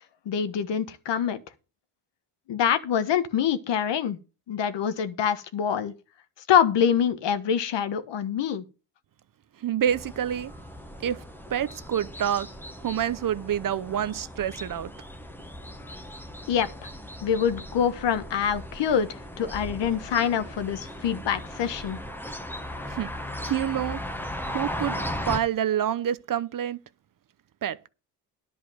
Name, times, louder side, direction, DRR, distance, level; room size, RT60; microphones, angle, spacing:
voice 1, 0.2-1.4 2.5-4.2 4.5-5.9 6.5-8.6 16.5-16.9 17.2-22.0, left 8 dB, 65° left, 1.4 m, -25 dB
voice 2, 9.6-10.5 11.0-11.2 11.5-12.5 12.8-14.9 22.9-23.1 23.4-24.0 24.5-25.0 25.3-26.8 27.6-27.9, right 10 dB, 45° right, 0.8 m, -27 dB
sound 1, 9.9-25.4, left 1 dB, 5° left, 1.2 m, -37 dB
11.0 x 5.0 x 7.8 m
cardioid pair, 100°, 46 cm